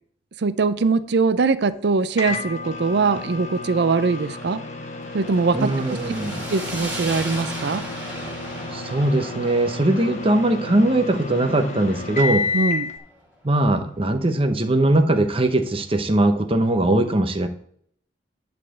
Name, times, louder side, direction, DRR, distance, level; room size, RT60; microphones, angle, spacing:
voice 1, 0.4-4.6 5.1-5.7 6.5-7.8 12.5-12.9, right 4 dB, 65° right, 13 dB, 0.5 m, -21 dB
Microwave oven, 2.2-12.9, left 3 dB, 40° left, 1.1 m, -31 dB
sound 1, 5.0-13.3, right 1 dB, 5° right, 2.9 m, -36 dB
voice 2, 5.5-6.5 8.7-12.5 13.4-17.5, right 1 dB, 30° right, 6 dB, 0.9 m, -20 dB
10.5 x 4.3 x 6.7 m, 0.63 s
head